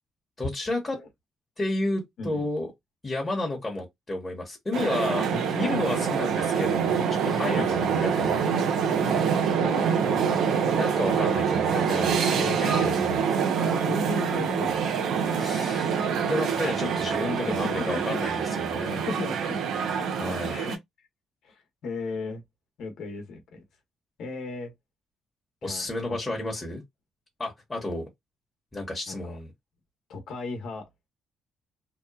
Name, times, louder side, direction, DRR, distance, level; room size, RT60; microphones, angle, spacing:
voice 1, 0.4-1.0 1.6-2.7 3.0-5.3 5.5-8.4 10.7-13.2 15.4-16.0 16.2-19.1 20.2-20.6 25.6-26.8 27.4-28.0 28.7-29.5, left 2 dB, 25° left, 1.0 m, -31 dB
sound 1, 4.7-20.8, right 6 dB, 75° right, 0.5 m, -25 dB
voice 2, 5.3-5.7 7.5-7.8 9.0-9.2 9.5-10.2 13.8-15.1 17.5-17.6 17.9-18.2 19.1-19.6 20.5-21.1 21.4-22.4 22.8-23.6 24.2-24.7 25.6-26.4 29.1-29.4 30.1-30.9, left 3 dB, 75° left, 0.9 m, -36 dB
2.9 x 2.1 x 2.3 m
cardioid pair, 90°, 0 cm